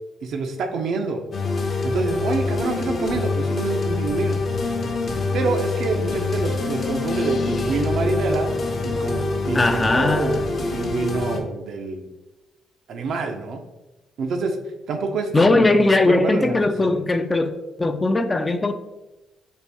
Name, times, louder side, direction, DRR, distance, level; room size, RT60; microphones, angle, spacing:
voice 1, 0.2-1.2 1.8-4.4 5.3-8.5 8.8-12.1 12.9-13.6 14.2-14.6 14.9-16.6 16.8-16.9, right 4 dB, 70° right, 0.5 m, -27 dB
sound 1, 1.3-11.4, left 3 dB, 50° left, 0.7 m, -25 dB
voice 2, 9.5-10.4 15.3-17.5 17.8-18.7, left 2 dB, 25° left, 0.3 m, -19 dB
4.2 x 2.5 x 3.4 m
cardioid pair, 90°, 0 cm